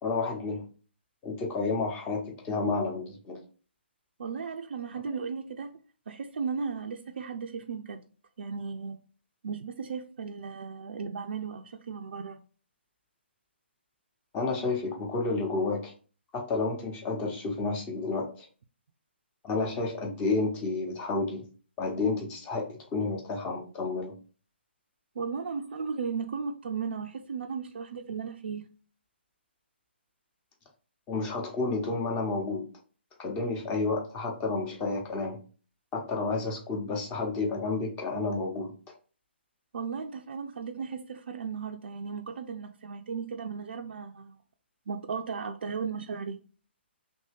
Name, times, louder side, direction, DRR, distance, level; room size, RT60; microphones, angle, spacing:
voice 1, 0.0-0.6 1.2-3.4 14.3-15.9 16.3-18.5 19.4-21.4 21.8-24.1 31.1-32.6 33.2-35.4 35.9-38.7, left 3 dB, 20° left, 0.9 m, -30 dB
voice 2, 4.2-5.8 6.1-8.0 8.4-9.0 9.4-12.4 25.2-28.6 39.7-44.4 44.9-46.4, right 5 dB, 65° right, 0.4 m, -35 dB
3.1 x 2.7 x 3.3 m
figure-of-eight pair, 140°, 6 cm